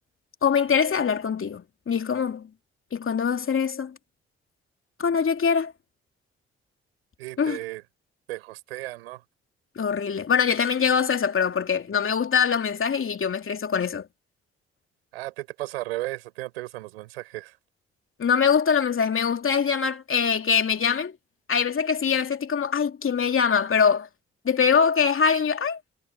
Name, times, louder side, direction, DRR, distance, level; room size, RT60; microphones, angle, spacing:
voice 1, 0.4-2.5 2.9-3.9 5.0-5.7 7.4-7.6 9.8-14.1 18.2-21.1 21.5-24.1 24.4-25.8, left 6 dB, 45° left, 3.0 m, -23 dB
voice 2, 7.2-7.8 8.3-9.2 15.1-17.6, right 19 dB, 85° right, 7.2 m, -35 dB
hypercardioid pair, 45°, 30 cm